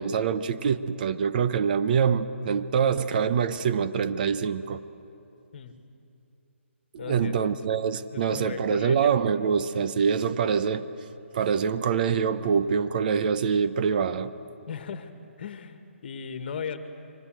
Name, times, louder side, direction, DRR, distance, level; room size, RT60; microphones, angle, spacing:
voice 1, 0.0-4.8 6.9-10.8 11.3-14.3, right 6 dB, 40° right, 0.9 m, -25 dB
voice 2, 7.0-7.3 8.1-9.1 14.7-15.1 15.4-16.8, left 7 dB, 45° left, 1.8 m, -36 dB
28.0 x 24.0 x 7.7 m
hypercardioid pair, 155°, 7 cm